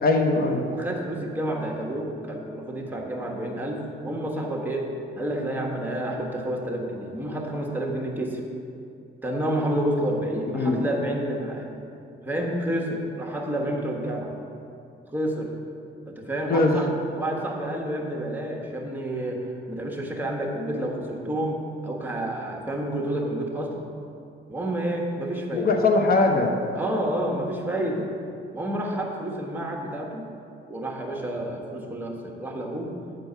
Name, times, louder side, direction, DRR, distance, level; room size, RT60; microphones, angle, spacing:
voice 1, 0.0-0.7 10.5-10.8 16.5-16.8 25.5-26.6, left 3 dB, 50° left, 3 dB, 1.0 m, -21 dB
voice 2, 0.7-8.4 9.2-11.7 12.2-14.4 15.1-15.5 16.1-23.9 24.5-25.7 26.7-28.1 28.5-30.3 30.7-32.9, right 1 dB, 10° right, -1 dB, 1.4 m, -29 dB
9.3 x 4.6 x 6.8 m, 2.6 s
cardioid pair, 90°, 20 cm